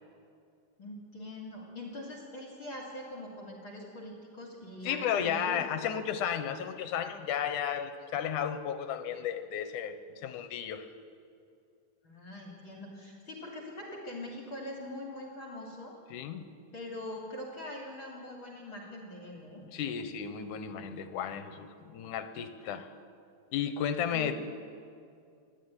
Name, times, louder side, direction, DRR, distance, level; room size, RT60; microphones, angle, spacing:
voice 1, 0.8-5.9 12.0-16.0 16.7-19.6 24.1-24.3, left 1 dB, 40° left, -1 dB, 3.2 m, -43 dB
voice 2, 4.8-10.9 16.1-16.5 19.7-22.9 23.5-24.3, left 8 dB, 75° left, 9 dB, 2.5 m, -33 dB
26.5 x 11.5 x 9.8 m, 2.4 s
omnidirectional pair, 3.8 m